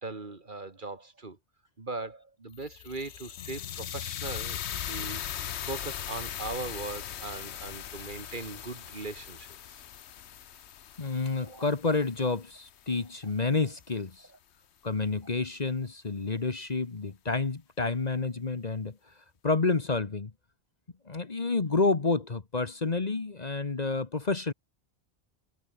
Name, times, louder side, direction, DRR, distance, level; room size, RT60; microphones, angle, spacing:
voice 1, 0.0-1.4 1.8-4.6 4.9-5.3 5.6-9.8 11.4-11.6, right 3 dB, 50° right, 2.2 m, -39 dB
sound 1, 2.5-12.7, left 10 dB, 80° left, 1.1 m, -39 dB
voice 2, 11.0-14.3 14.8-19.0 19.4-20.3 21.1-24.5, left 3 dB, 40° left, 1.4 m, -29 dB
omnidirectional pair, 1.1 m